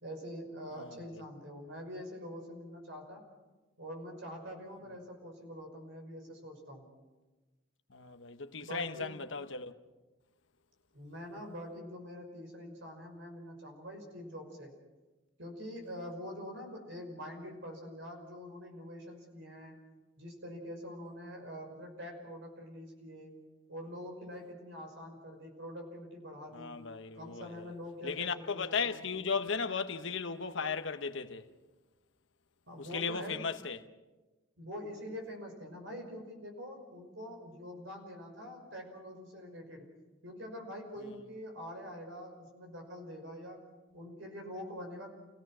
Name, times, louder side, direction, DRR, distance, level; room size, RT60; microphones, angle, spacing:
voice 1, 0.0-3.2 3.8-6.9 8.6-9.1 10.9-14.7 15.4-19.8 20.2-23.3 23.7-26.8 27.1-29.0 32.7-33.5 34.6-39.9 40.2-43.6 43.9-45.1, equal, 65° right, 5.8 m, -45 dB
voice 2, 7.9-9.7 26.5-27.7 28.0-31.5 32.8-33.8, left 5 dB, 65° left, 1.2 m, -36 dB
29.5 x 17.0 x 6.3 m
head